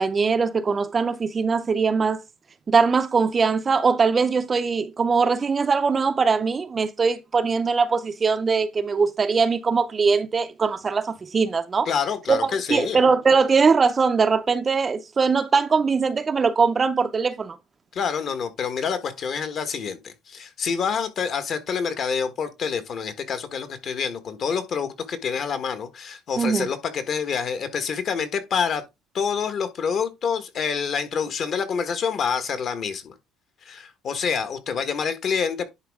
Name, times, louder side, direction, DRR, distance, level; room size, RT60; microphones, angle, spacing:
voice 1, 0.0-2.2 2.7-11.9 12.3-12.4 12.7-17.6 26.4-26.7, right 5 dB, 25° right, 0.6 m, -21 dB
voice 2, 11.8-13.0 17.9-28.8 29.1-33.1 33.6-35.6, left 6 dB, 45° left, 1.4 m, -27 dB
10.5 x 4.2 x 3.6 m
cardioid pair, 130°, 0 cm